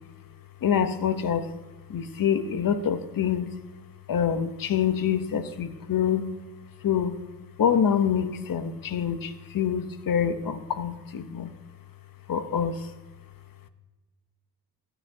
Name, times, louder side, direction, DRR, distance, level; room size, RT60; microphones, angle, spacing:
voice 1, 0.6-1.5 1.9-3.5 4.1-6.3 6.8-7.2 7.6-11.5 12.3-12.9, left 8 dB, 55° left, 10 dB, 0.8 m, -26 dB
15.0 x 8.9 x 2.7 m, 1.2 s
cardioid pair, 95°, 41 cm